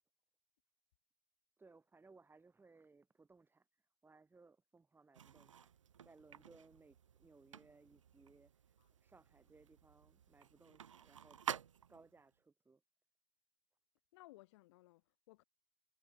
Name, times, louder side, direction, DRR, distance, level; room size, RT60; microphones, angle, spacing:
voice 1, 1.6-5.7 6.0-8.5 9.0-11.4 11.9-12.8, right 3 dB, 15° right, 1.7 m, -65 dB
sound 1, 5.1-12.2, right 8 dB, 80° right, 0.8 m, -50 dB
voice 2, 14.1-15.4, left 19 dB, 60° left, 2.3 m, -61 dB
figure-of-eight pair, 75°, 16 cm